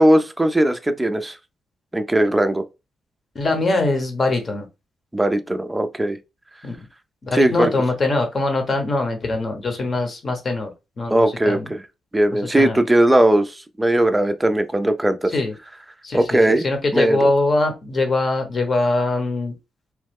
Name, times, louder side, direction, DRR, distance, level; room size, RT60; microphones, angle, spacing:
voice 1, 0.0-1.4 1.9-2.6 5.1-6.2 7.3-7.7 11.1-11.8 12.1-15.3 16.1-16.6 16.9-17.3, right 1 dB, 15° right, 0.4 m, -18 dB
voice 2, 3.3-4.6 6.6-6.8 7.2-10.7 11.0-11.7 12.3-12.8 15.3-15.5 16.0-19.5, left 2 dB, 45° left, 0.9 m, -22 dB
3.0 x 2.1 x 3.4 m
cardioid pair, 75°, 0 cm